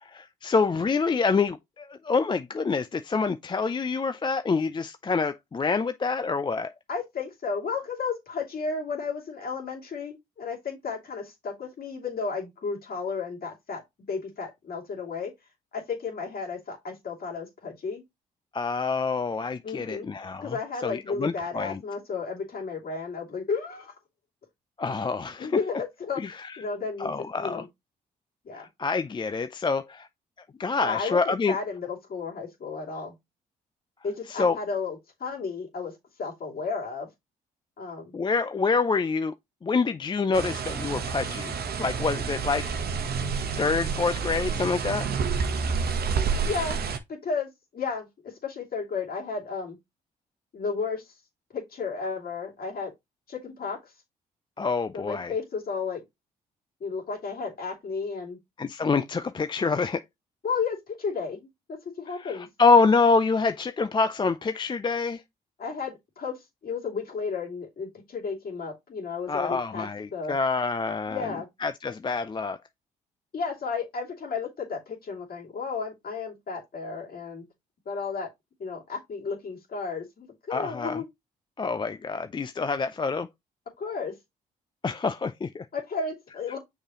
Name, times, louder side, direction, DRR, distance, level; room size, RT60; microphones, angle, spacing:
voice 1, 0.0-6.7 18.5-20.6 20.8-21.8 24.8-25.5 26.2-26.6 27.0-27.6 28.5-30.1 30.6-31.6 34.3-34.6 38.1-39.3 39.6-43.0 43.6-45.1 54.6-55.3 58.6-60.0 62.1-65.2 69.3-71.4 71.6-72.6 80.5-81.0 81.6-83.3 84.8-85.7, left 4 dB, 25° left, 0.5 m, -26 dB
voice 2, 6.9-13.8 14.1-15.3 15.7-18.0 19.6-20.1 20.4-23.9 25.4-26.2 26.6-27.1 27.4-27.7 28.4-28.7 30.8-33.2 34.0-35.9 36.2-37.1 37.8-38.1 46.4-46.8 47.2-49.8 50.5-51.1 51.5-52.9 53.3-53.9 54.9-56.0 56.8-58.4 60.4-62.5 65.6-70.4 71.1-71.5 73.3-77.4 77.9-78.3 78.6-81.1 83.8-84.1 85.7-86.6, left 5 dB, 55° left, 2.8 m, -33 dB
sound 1, 40.3-47.0, right 5 dB, 60° right, 1.0 m, -29 dB
6.4 x 5.0 x 3.0 m
hypercardioid pair, 50°, 19 cm